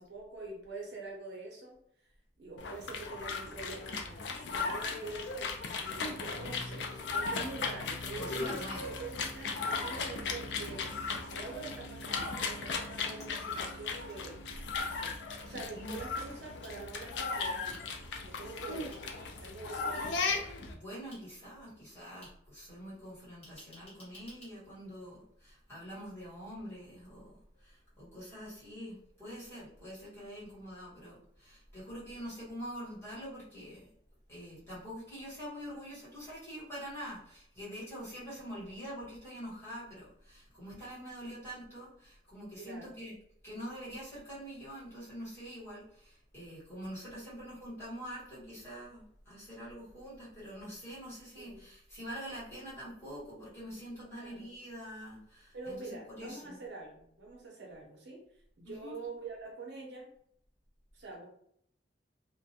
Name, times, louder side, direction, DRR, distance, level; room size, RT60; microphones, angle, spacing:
voice 1, 0.0-1.8 2.4-5.3 5.8-11.0 11.3-14.4 14.8-15.2 15.4-17.9 18.2-19.0 19.4-20.5 42.6-42.9 51.4-51.6 54.1-54.5 55.5-58.2 58.6-60.1 60.9-61.3, right 3 dB, 75° right, -1 dB, 0.7 m, -45 dB
sound 1, 2.6-20.7, left 4 dB, 80° left, 0.4 m, -37 dB
sound 2, 7.5-7.6 8.6-8.7 9.6-9.7 10.6-10.7 11.7-11.8 13.2-14.2 14.5-15.7 16.6-16.7 17.7-17.8 18.9-19.0 19.9-20.0 21.1-21.2 22.2-22.3 23.4-24.5, left 1 dB, 35° left, 1.1 m, -55 dB
voice 2, 8.1-8.9 15.4-15.9 18.2-18.5 20.7-33.9 34.3-43.2 43.4-56.6 58.6-59.0, equal, 15° left, -10 dB, 1.2 m, -45 dB
2.4 x 2.1 x 2.7 m, 0.68 s
head